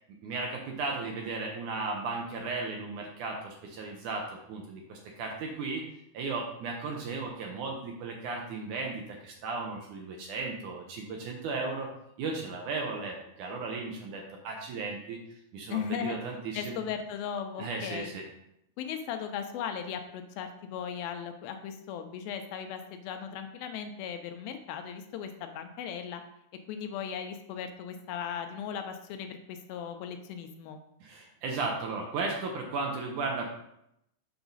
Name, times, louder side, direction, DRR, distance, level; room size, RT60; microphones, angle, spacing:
voice 1, 0.2-5.8 6.1-11.9 12.2-15.2 15.5-16.8 17.6-18.3 31.0-33.5, right 3 dB, 70° right, 0 dB, 2.1 m, -35 dB
voice 2, 15.7-16.2 16.5-18.1 18.8-26.2 26.7-30.8, left 8 dB, 80° left, 7 dB, 2.4 m, -37 dB
7.0 x 5.8 x 4.0 m, 0.78 s
omnidirectional pair, 4.3 m